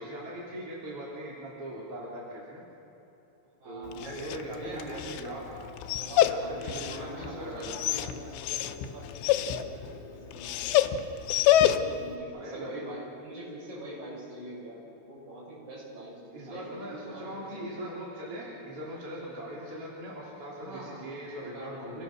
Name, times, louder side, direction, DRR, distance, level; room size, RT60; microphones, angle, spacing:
voice 1, 0.0-2.6 3.6-5.5 6.2-7.8 12.3-12.9 16.3-22.0, right 1 dB, 35° right, -6 dB, 4.1 m, -40 dB
voice 2, 3.6-4.8 5.9-11.0 11.5-17.5 20.6-21.1 21.4-21.9, right 1 dB, 55° right, -5 dB, 8.7 m, -44 dB
Dog, 3.8-12.1, left 11 dB, 85° left, 3.0 m, -28 dB
28.0 x 17.5 x 6.2 m, 2.9 s
omnidirectional pair, 4.9 m